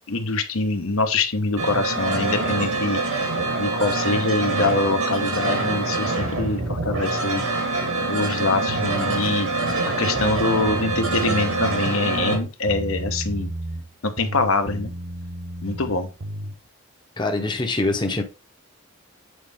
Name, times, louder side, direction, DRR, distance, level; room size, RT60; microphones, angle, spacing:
voice 1, 0.1-3.0 3.6-7.4 8.0-9.5 10.0-13.5 14.0-14.9 15.6-16.1, left 3 dB, 80° left, 1.0 m, -24 dB
sound 1, 1.6-12.4, right 3 dB, 90° right, 2.9 m, -25 dB
sound 2, 8.7-9.7 10.1-11.9 12.2-13.9 14.2-16.6, right 1 dB, 55° right, 0.8 m, -33 dB
voice 2, 17.2-18.2, left 2 dB, 20° left, 0.7 m, -24 dB
7.9 x 4.2 x 3.5 m
head